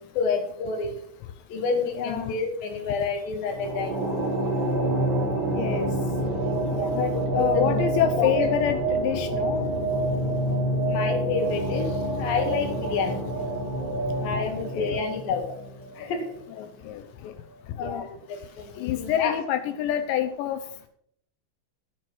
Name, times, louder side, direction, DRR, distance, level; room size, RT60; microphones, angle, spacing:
voice 1, 0.1-1.0 1.5-4.4 6.7-8.3 10.8-13.2 14.2-15.6 15.9-16.4 17.7-19.3, left 5 dB, 55° left, 3 dB, 3.4 m, -29 dB
voice 2, 2.0-2.4 5.5-5.9 6.9-9.6 14.2-15.1 16.5-17.3 17.8-18.1 18.8-20.6, left 10 dB, 80° left, 9 dB, 2.6 m, -27 dB
sound 1, 3.5-16.0, right 1 dB, 25° right, 3.0 m, -27 dB
10.5 x 9.0 x 6.3 m, 0.66 s
omnidirectional pair, 5.8 m